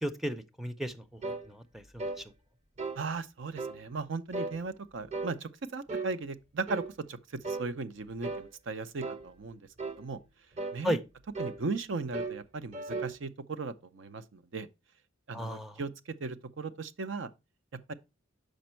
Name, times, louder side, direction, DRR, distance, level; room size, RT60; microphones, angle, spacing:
voice 1, 0.0-1.0 1.5-2.2 10.8-11.0 15.3-15.7, equal, ahead, 0.5 m, -34 dB
sound 1, 1.2-1.5 2.0-2.2 2.8-3.0 3.6-3.8 4.3-4.6 5.1-5.4 5.9-6.1 6.7-6.9 7.4-7.7 8.2-8.5 9.0-9.2 9.8-10.0 10.5-10.8 11.3-11.6 12.1-12.4 12.7-13.2, right 3 dB, 35° right, 0.8 m, -36 dB
voice 2, 3.0-10.2 10.7-11.0 11.4-14.7 15.3-17.3 17.9-18.0, right 4 dB, 65° right, 0.6 m, -37 dB
6.5 x 5.1 x 4.4 m
head